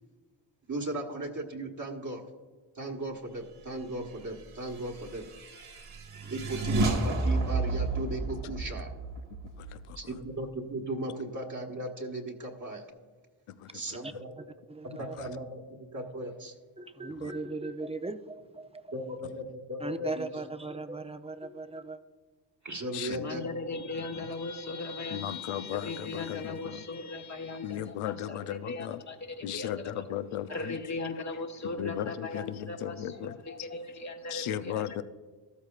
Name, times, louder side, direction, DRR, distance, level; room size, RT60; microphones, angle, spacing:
voice 1, 0.7-2.2 2.7-5.3 6.2-8.9 9.9-12.8 13.7-14.3 15.0-16.5 18.9-20.3 22.6-23.4, right 1 dB, 35° right, 1.4 m, -37 dB
sound 1, 4.7-10.3, right 2 dB, 80° right, 1.9 m, -31 dB
voice 2, 9.6-10.0 13.5-14.2 15.2-15.3 17.2-17.3 22.9-23.3 25.1-26.9 27.6-29.0 29.4-30.8 31.6-33.4 34.3-35.0, left 11 dB, 85° left, 0.6 m, -36 dB
voice 3, 14.0-15.1 16.8-18.9 19.8-22.0, right 3 dB, 15° right, 0.6 m, -38 dB
voice 4, 23.2-30.1 30.5-35.0, left 3 dB, 35° left, 1.4 m, -38 dB
13.5 x 13.0 x 2.4 m
cardioid pair, 60°, 49 cm